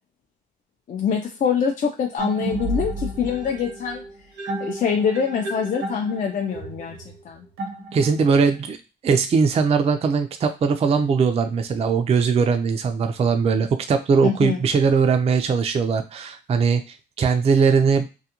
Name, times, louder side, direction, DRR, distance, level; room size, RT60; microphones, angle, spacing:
voice 1, 0.9-4.0 4.6-7.4 14.2-14.6, left 7 dB, 40° left, 2 dB, 0.4 m, -24 dB
sound 1, 2.2-8.4, right 1 dB, 85° right, 0.9 m, -32 dB
voice 2, 7.9-8.8 9.0-18.1, right 5 dB, 30° right, 6 dB, 0.3 m, -20 dB
2.3 x 2.1 x 2.8 m, 0.30 s
cardioid pair, 90°, 20 cm